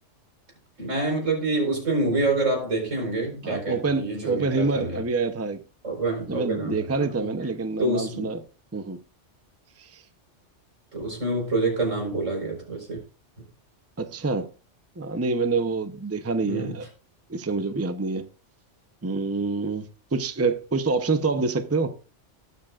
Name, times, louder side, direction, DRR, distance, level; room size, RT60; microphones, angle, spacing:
voice 1, 0.8-5.0 5.8-7.3 7.8-8.3 10.9-13.0 16.4-16.7, right 2 dB, 85° right, 4.9 m, -27 dB
voice 2, 3.4-5.6 6.3-8.4 8.7-9.0 9.8-10.0 14.0-14.5 15.0-16.9 17.3-18.3 19.0-22.0, right 3 dB, 15° right, 0.6 m, -27 dB
19.0 x 7.5 x 2.4 m
omnidirectional pair, 1.3 m